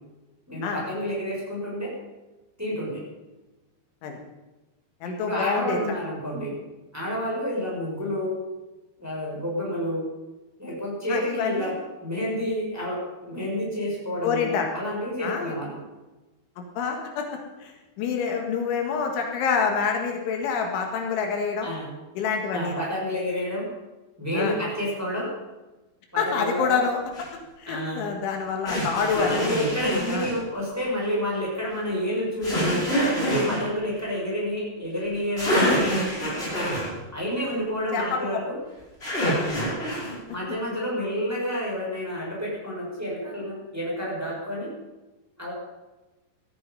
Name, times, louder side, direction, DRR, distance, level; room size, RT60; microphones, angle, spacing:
voice 1, 0.5-1.9 2.6-3.0 5.0-6.6 6.9-8.4 9.0-10.1 10.6-11.7 12.0-15.8 21.6-21.9 22.5-23.7 24.2-25.3 26.1-26.8 27.7-28.1 29.3-32.8 33.1-35.9 37.1-38.6 40.3-44.7 45.4-45.5, equal, 5° right, -4 dB, 5.6 m, -29 dB
voice 2, 5.0-5.8 11.1-11.7 14.2-14.7 15.2-15.6 16.6-17.3 17.6-21.7 22.2-22.8 24.3-24.6 26.2-27.3 27.6-29.4 30.1-30.3 37.9-38.2 39.2-39.5, left 6 dB, 75° left, 3 dB, 4.1 m, -27 dB
sound 1, 27.1-27.3 28.7-30.4 32.4-33.6 35.1-35.2 35.4-36.9 39.0-40.1, equal, 10° left, 5.6 m, -25 dB
17.5 x 13.5 x 5.5 m, 1.1 s
omnidirectional pair, 5.5 m